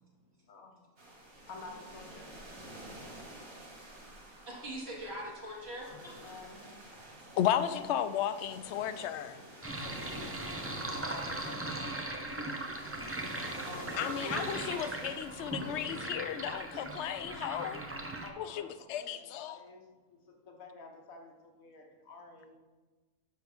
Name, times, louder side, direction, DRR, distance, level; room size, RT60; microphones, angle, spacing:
voice 1, 0.2-0.8 1.5-2.3 5.4-5.6 6.2-6.8 9.8-12.5 18.2-22.6, left 3 dB, 85° left, 3 dB, 1.5 m, -51 dB
sound 1, 1.0-16.0, right 1 dB, 75° right, 2.5 m, -49 dB
voice 2, 4.5-5.9 13.6-15.2, equal, 50° right, -4 dB, 2.2 m, -42 dB
voice 3, 7.4-9.4 14.0-17.8 18.4-19.6, left 10 dB, 65° left, 12 dB, 0.8 m, -34 dB
Sink (filling or washing), 9.6-18.3, right 2 dB, 20° right, 0.4 m, -39 dB
10.5 x 3.9 x 6.0 m, 1.3 s
omnidirectional pair, 1.4 m